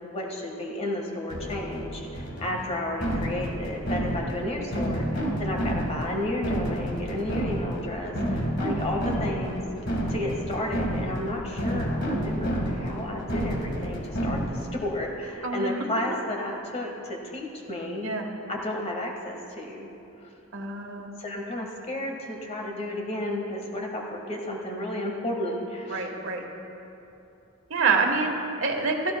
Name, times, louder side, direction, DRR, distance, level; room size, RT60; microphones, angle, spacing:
voice 1, 0.0-9.6 10.1-18.1 18.5-19.9 20.2-20.3 21.2-26.1, left 1 dB, 30° left, 0 dB, 1.5 m, -32 dB
sound 1, 1.3-14.8, equal, 55° left, 1.7 m, -30 dB
voice 2, 8.2-8.5 15.4-15.7 18.0-18.3 20.5-21.1 25.9-26.4 27.7-29.1, right 4 dB, 65° right, 2 dB, 1.3 m, -27 dB
16.5 x 15.0 x 2.3 m, 2.9 s
head